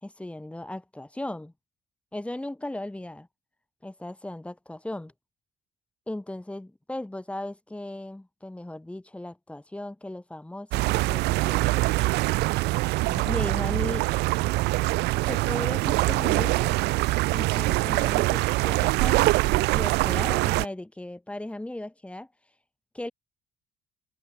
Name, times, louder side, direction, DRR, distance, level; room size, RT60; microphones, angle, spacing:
voice 1, 0.0-1.5 2.1-3.3 3.8-5.1 6.1-11.9 13.0-14.1 15.2-16.7 17.3-22.3 22.9-23.1, left 1 dB, 5° left, 2.7 m, -37 dB
sound 1, 10.7-20.7, right 21 dB, 80° right, 0.4 m, -24 dB
cardioid pair, 110°, 17 cm